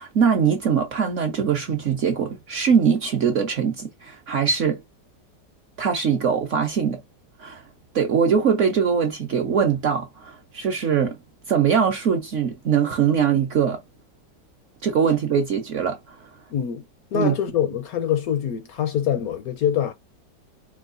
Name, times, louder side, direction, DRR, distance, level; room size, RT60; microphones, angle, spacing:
voice 1, 0.0-4.8 5.8-7.0 7.4-7.6 7.9-11.2 11.5-13.8 14.8-16.3 17.1-17.3, right 7 dB, 60° right, 0.8 m, -22 dB
voice 2, 16.5-16.8 17.1-19.9, left 9 dB, 70° left, 0.9 m, -24 dB
4.5 x 2.3 x 2.4 m
omnidirectional pair, 1.9 m